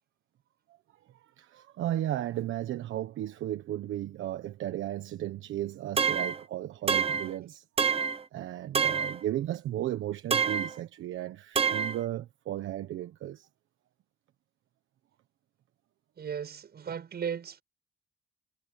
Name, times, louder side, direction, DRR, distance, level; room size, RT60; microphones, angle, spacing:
voice 1, 1.1-7.6 8.3-13.5, right 13 dB, 80° right, 1.3 m, -35 dB
sound 1, 6.0-6.4 6.9-7.3 7.8-8.2 8.7-9.2 10.3-10.8 11.6-12.0, right 6 dB, 30° right, 0.8 m, -27 dB
voice 2, 16.2-17.6, right 7 dB, 55° right, 7.7 m, -36 dB
cardioid pair, 90°, 20 cm